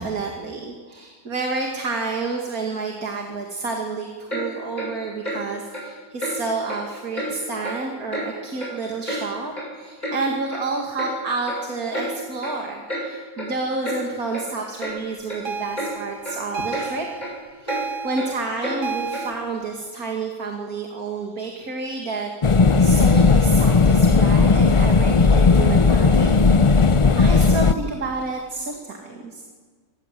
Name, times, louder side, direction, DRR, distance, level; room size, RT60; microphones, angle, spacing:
voice 1, 0.0-17.1 17.5-26.9 27.2-29.4, right 3 dB, 65° right, 1 dB, 2.7 m, -30 dB
Clock, 4.3-4.5 4.8-4.9 5.2-5.4 5.7-5.9 6.2-6.3 6.7-6.8 7.1-7.3 7.6-7.8 8.1-8.3 8.6-9.2 9.5-9.6 10.0-10.2 10.5-10.7 11.0-11.1 11.5-11.6 11.9-12.1 12.4-12.6 12.9-13.0 13.4-13.5 13.8-14.0 14.3-14.4 14.8-14.9 15.3-15.4 15.8-15.9 16.2-16.4 16.7-16.9 17.2-17.3 17.7-17.8 18.2-18.3 18.6-18.8 19.1-19.3, equal, 25° left, 7.9 m, -30 dB
sound 1, 15.4-19.3, right 5 dB, 45° right, 0.8 m, -32 dB
sound 2, 22.4-27.7, left 4 dB, 50° left, 0.3 m, -15 dB
26.5 x 20.0 x 7.7 m, 1.5 s
omnidirectional pair, 1.7 m